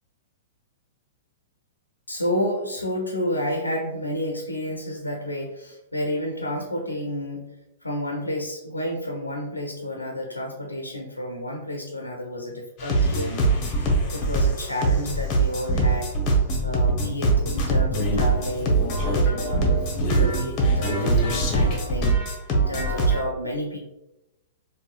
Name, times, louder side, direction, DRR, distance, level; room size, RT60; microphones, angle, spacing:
voice 1, 2.1-7.5 7.8-16.1 16.6-23.8, left 1 dB, 80° left, 1 dB, 0.5 m, -31 dB
sound 1, 12.8-23.2, right 2 dB, 30° left, 0.8 m, -22 dB
4.0 x 2.6 x 2.3 m, 0.92 s
figure-of-eight pair, 105°, 0 cm